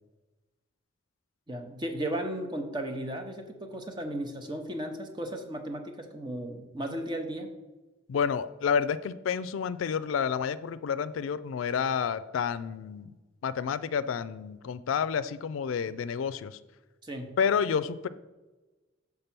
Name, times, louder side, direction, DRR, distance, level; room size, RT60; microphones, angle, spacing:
voice 1, 1.5-7.5 17.0-17.3, right 1 dB, 25° right, 4 dB, 0.7 m, -35 dB
voice 2, 8.1-13.1 13.4-16.6 17.4-18.1, left 7 dB, 85° left, 14 dB, 0.3 m, -29 dB
6.8 x 3.5 x 5.9 m, 1.2 s
head